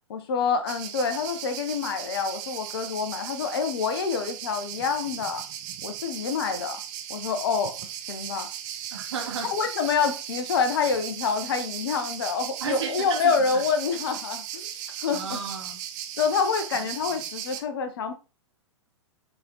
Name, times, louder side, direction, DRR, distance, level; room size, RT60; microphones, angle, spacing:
voice 1, 0.1-5.4 5.8-6.8 7.1-7.7 8.1-8.5 9.5-14.7 15.0-15.4 16.2-18.1, left 5 dB, 50° left, 1.1 m, -27 dB
sound 1, 0.7-17.6, right 10 dB, 35° right, 0.8 m, -37 dB
voice 2, 8.9-9.5 12.6-13.6 15.1-15.8 17.1-17.2, right 6 dB, 60° right, 2.2 m, -33 dB
6.6 x 4.1 x 3.9 m
figure-of-eight pair, 105°, 16 cm